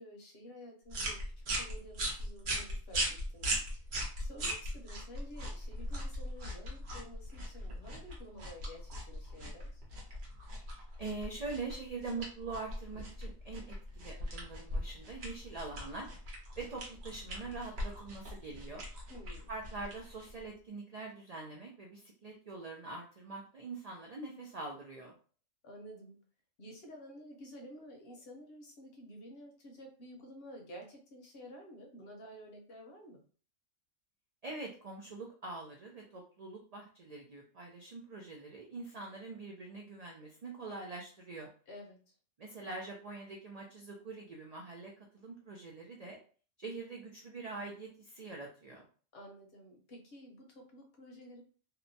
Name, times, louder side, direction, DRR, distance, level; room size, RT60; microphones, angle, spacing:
voice 1, 0.0-3.5 4.2-9.8 19.1-19.5 25.6-26.2 26.6-33.2 41.7-42.0 49.1-51.4, equal, 60° left, 2 dB, 0.8 m, -51 dB
sound 1, 0.9-20.5, equal, 60° right, 1.0 m, -39 dB
voice 2, 11.0-16.1 16.6-18.8 19.5-25.2 34.4-41.5 42.4-46.2 46.6-48.9, right 3 dB, 80° right, 0 dB, 0.3 m, -44 dB
2.7 x 2.1 x 2.6 m, 0.40 s
omnidirectional pair, 1.3 m